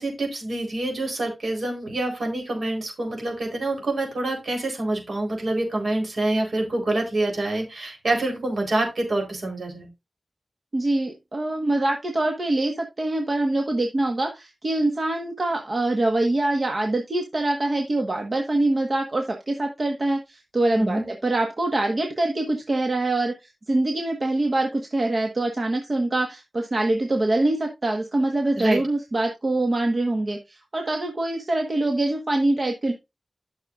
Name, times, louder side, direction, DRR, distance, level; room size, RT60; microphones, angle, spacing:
voice 1, 0.0-9.9 20.7-21.1 28.6-28.8, right 2 dB, 75° right, 1 dB, 4.0 m, -26 dB
voice 2, 10.7-32.9, right 2 dB, 55° right, 3 dB, 1.5 m, -24 dB
13.0 x 6.4 x 2.5 m, 0.23 s
cardioid pair, 55°, 0 cm